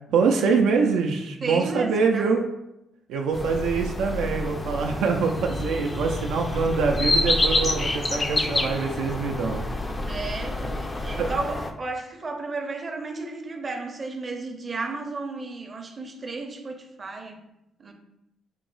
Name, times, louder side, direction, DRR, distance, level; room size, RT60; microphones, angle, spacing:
voice 1, 0.1-2.4 3.1-9.6 11.2-11.3, right 5 dB, 85° right, 2 dB, 0.4 m, -24 dB
voice 2, 1.4-2.3 6.4-6.6 9.9-17.4 17.8-17.9, right 3 dB, 35° right, 3 dB, 0.6 m, -33 dB
sound 1, 3.3-11.7, left 2 dB, 25° left, 0.4 m, -28 dB
4.5 x 2.0 x 3.8 m, 0.87 s
cardioid pair, 90°, 0 cm